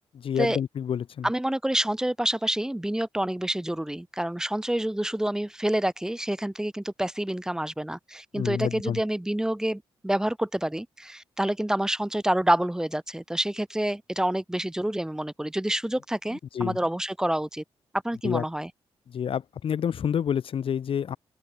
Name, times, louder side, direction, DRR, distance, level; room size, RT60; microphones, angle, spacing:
voice 1, 0.1-1.3 8.3-9.0 16.5-16.8 18.2-18.4 19.1-21.2, left 8 dB, 65° left, 1.7 m, -28 dB
voice 2, 1.2-17.6 18.0-18.7, right 1 dB, 5° right, 1.9 m, -28 dB
open air
cardioid pair, 110°, 10 cm